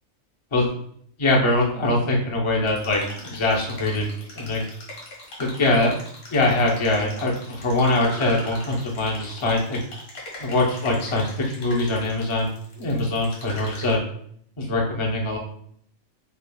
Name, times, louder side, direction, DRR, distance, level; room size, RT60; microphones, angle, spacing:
voice 1, 1.2-4.1 4.3-4.6 5.4-5.9 6.3-9.8 10.4-12.5 12.8-14.0 14.6-15.4, left 2 dB, 30° left, -2 dB, 0.7 m, -23 dB
sound 1, 2.7-13.9, left 1 dB, 65° left, 2.1 m, -40 dB
6.8 x 2.3 x 2.3 m, 0.64 s
omnidirectional pair, 1.4 m